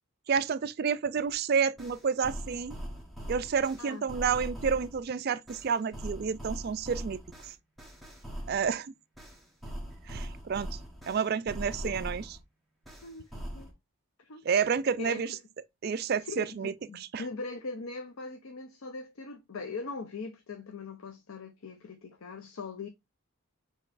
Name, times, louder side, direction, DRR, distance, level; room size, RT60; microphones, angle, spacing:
voice 1, 0.3-2.8 3.3-7.2 7.4-7.5 8.5-8.9 10.1-10.8 11.1-12.4 14.4-15.4 15.8-17.2, right 6 dB, 45° right, 0.3 m, -30 dB
sound 1, 1.3-1.4 1.8-5.0 5.5-8.7 9.2-12.4 12.8-13.7, equal, ahead, 1.1 m, -41 dB
voice 2, 15.0-15.4 16.2-16.5 16.9-22.9, left 4 dB, 70° left, 0.6 m, -41 dB
6.5 x 3.0 x 2.5 m
head